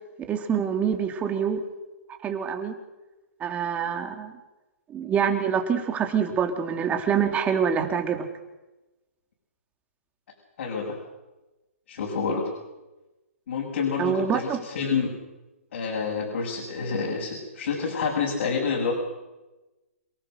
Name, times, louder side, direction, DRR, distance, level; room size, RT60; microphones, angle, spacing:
voice 1, 0.3-1.6 2.2-2.7 3.4-4.3 4.9-8.3 14.0-14.6, right 7 dB, 20° right, 5 dB, 3.2 m, -25 dB
voice 2, 10.6-11.0 11.9-12.5 13.5-15.1 15.7-18.9, left 5 dB, 60° left, -2 dB, 7.4 m, -28 dB
29.0 x 19.0 x 6.7 m, 1.1 s
hypercardioid pair, 135°, 8 cm